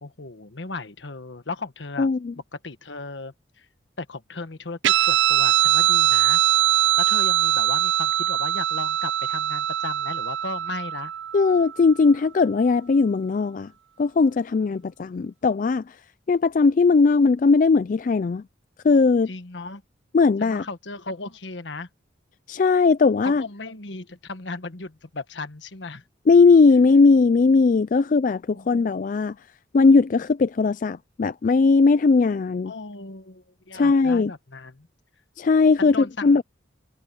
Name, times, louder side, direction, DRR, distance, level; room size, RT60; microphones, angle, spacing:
voice 1, 0.0-2.1 2.5-3.7 4.0-6.4 7.0-11.1 14.7-14.8 19.3-19.8 20.4-21.9 23.2-26.0 28.5-28.7 32.6-34.9 35.8-36.4, left 3 dB, 75° left, 1.3 m, -36 dB
voice 2, 2.0-2.3 11.3-13.7 14.0-15.9 16.3-18.4 18.8-19.3 20.1-20.6 22.5-23.4 26.3-29.3 29.7-32.7 33.7-34.3 35.4-36.4, left 4 dB, 45° left, 0.3 m, -18 dB
Guitar, 4.8-11.8, right 12 dB, 80° right, 0.5 m, -22 dB
head